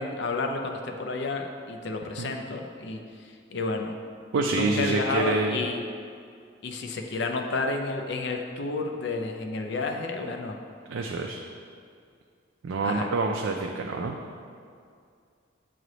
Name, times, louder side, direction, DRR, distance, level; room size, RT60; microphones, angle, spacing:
voice 1, 0.0-3.9 4.4-5.8 6.6-10.6 12.8-13.1, left 3 dB, 65° left, 3 dB, 0.5 m, -31 dB
voice 2, 4.3-5.6 10.9-11.4 12.6-14.2, right 3 dB, 90° right, 2 dB, 0.4 m, -27 dB
7.7 x 3.2 x 3.9 m, 2.3 s
head